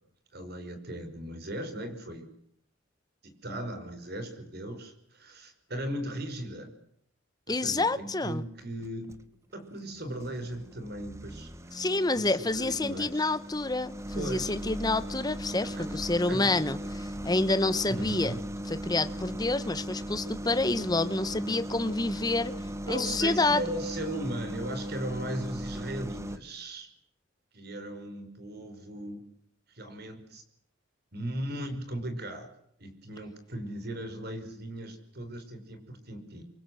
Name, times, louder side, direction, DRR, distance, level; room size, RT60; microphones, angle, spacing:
voice 1, 0.3-2.3 3.2-6.7 7.5-9.2 9.5-11.8 12.1-13.3 14.1-14.5 15.6-16.6 17.9-18.4 22.9-26.9 27.5-29.2 29.7-30.4 31.1-32.5 32.8-36.4, right 1 dB, 55° right, 5.2 m, -37 dB
voice 2, 7.5-8.4 11.7-18.3 18.7-22.5 22.9-23.6, left 2 dB, 20° left, 1.1 m, -28 dB
sound 1, 8.6-9.2 9.8-26.4, equal, 15° right, 1.3 m, -38 dB
26.5 x 24.5 x 7.8 m
head